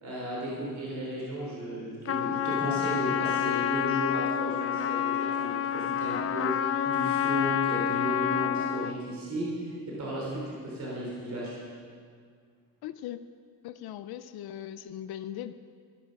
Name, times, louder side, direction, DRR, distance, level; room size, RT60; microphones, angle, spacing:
voice 1, 0.0-6.5 6.8-11.5, equal, 50° right, -5 dB, 3.6 m, -34 dB
Trumpet, 2.1-9.0, left 10 dB, 40° left, 0.4 m, -28 dB
voice 2, 12.8-13.2 13.6-15.5, left 11 dB, 85° left, 11 dB, 0.6 m, -39 dB
14.0 x 12.0 x 5.8 m, 2.1 s
cardioid pair, 175°, 37 cm